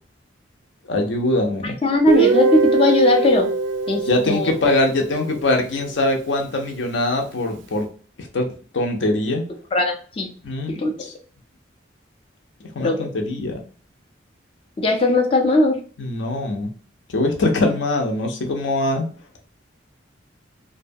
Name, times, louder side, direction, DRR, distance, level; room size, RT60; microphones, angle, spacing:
voice 1, 0.9-1.8 3.9-7.9 8.2-9.4 10.4-11.1 12.7-13.6 16.0-16.7 17.1-19.1, left 2 dB, 75° left, 2 dB, 0.6 m, -22 dB
voice 2, 1.6-3.5 3.9-4.5 9.7-10.3 10.8-10.9 12.8-13.0 14.8-15.8, left 2 dB, 30° left, 3 dB, 0.3 m, -19 dB
Guitar, 2.1-5.9, right 3 dB, 80° right, 0.4 m, -22 dB
2.6 x 2.2 x 2.6 m, 0.40 s
head